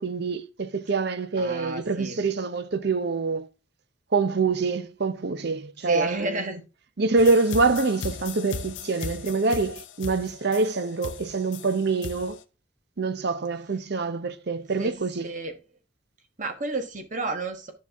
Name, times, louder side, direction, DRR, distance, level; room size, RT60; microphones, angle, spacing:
voice 1, 0.0-3.5 4.1-6.3 7.0-12.4 13.0-15.3, right 3 dB, 55° right, 0.7 m, -25 dB
voice 2, 1.4-2.2 5.8-6.6 14.8-14.9 15.2-15.5 16.4-17.7, right 2 dB, 40° right, 1.3 m, -30 dB
sound 1, 7.2-12.4, left 5 dB, 65° left, 0.5 m, -37 dB
9.8 x 5.6 x 3.5 m
head